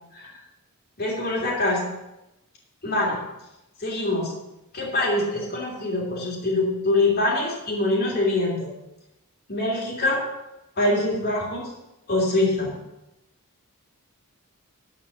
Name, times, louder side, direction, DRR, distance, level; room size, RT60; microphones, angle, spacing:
voice 1, 1.0-1.8 2.8-3.2 3.8-4.3 4.7-8.7 9.5-10.2 10.8-11.6 12.1-12.7, left 2 dB, 45° left, -3 dB, 3.0 m, -24 dB
12.5 x 5.1 x 7.0 m, 0.94 s
head